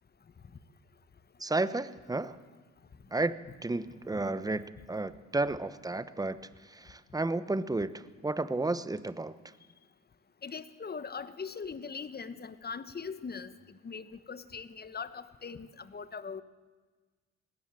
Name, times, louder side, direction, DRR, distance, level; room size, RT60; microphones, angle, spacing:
voice 1, 1.4-2.4 3.1-3.4 3.6-6.4 6.7-9.3, right 2 dB, 10° right, 15 dB, 0.9 m, -32 dB
voice 2, 10.4-16.4, left 5 dB, 30° left, 13 dB, 1.2 m, -41 dB
19.5 x 17.5 x 7.6 m, 1.4 s
cardioid pair, 90°, 30 cm